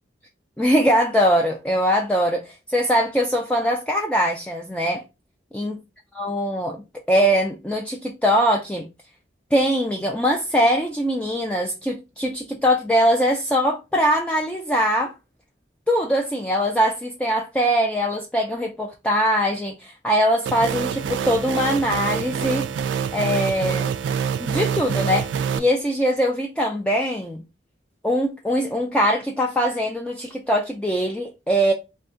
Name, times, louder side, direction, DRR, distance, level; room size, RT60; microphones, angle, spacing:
voice 1, 0.6-5.0 5.5-5.8 6.2-6.8 7.1-8.9 9.5-15.1 15.9-22.7 23.1-23.9 24.4-25.3 25.6-27.4 28.0-31.7, equal, 5° left, 0.4 m, -22 dB
sound 1, 20.5-25.6, right 7 dB, 90° right, 0.3 m, -26 dB
2.5 x 2.3 x 3.6 m
head